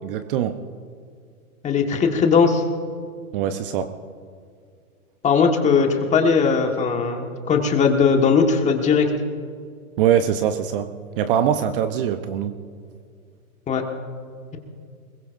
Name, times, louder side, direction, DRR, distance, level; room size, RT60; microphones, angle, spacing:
voice 1, 0.0-0.6 3.3-3.9 10.0-10.9 11.2-12.5, right 9 dB, 40° right, 10 dB, 0.8 m, -22 dB
voice 2, 1.6-2.6 5.2-9.1 13.7-13.8, left 5 dB, 15° left, 3 dB, 1.5 m, -19 dB
21.5 x 20.5 x 2.6 m, 2.2 s
hypercardioid pair, 135°, 44 cm